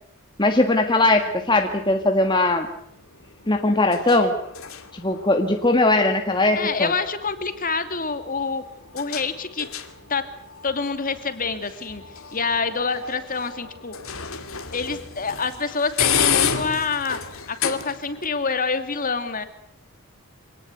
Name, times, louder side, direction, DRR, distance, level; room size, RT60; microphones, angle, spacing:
voice 1, 0.4-2.7 3.5-4.3 4.9-6.9, left 2 dB, 20° left, 4 dB, 1.8 m, -20 dB
sound 1, 0.8-18.3, left 8 dB, 70° left, 2.6 m, -32 dB
voice 2, 6.5-8.6 8.9-9.7 10.1-10.2 10.6-12.0 12.3-13.9 14.7-17.2 17.5-19.4, left 4 dB, 40° left, 9 dB, 2.6 m, -26 dB
26.5 x 18.5 x 9.5 m, 0.73 s
head